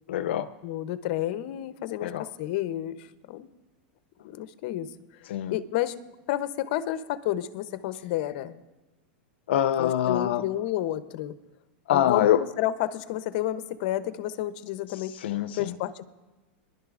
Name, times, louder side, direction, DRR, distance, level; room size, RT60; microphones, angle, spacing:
voice 1, 0.1-0.5 2.0-2.3 5.3-5.5 9.5-10.4 11.9-12.4 15.2-15.8, left 11 dB, 80° left, 11 dB, 0.4 m, -24 dB
voice 2, 0.6-3.5 4.2-4.9 5.3-5.9 6.3-8.6 9.8-11.3 11.9-12.3 12.6-15.2 15.5-16.1, left 13 dB, 50° left, 13 dB, 0.7 m, -30 dB
23.0 x 11.0 x 2.5 m, 1.1 s
supercardioid pair, 155°, 6 cm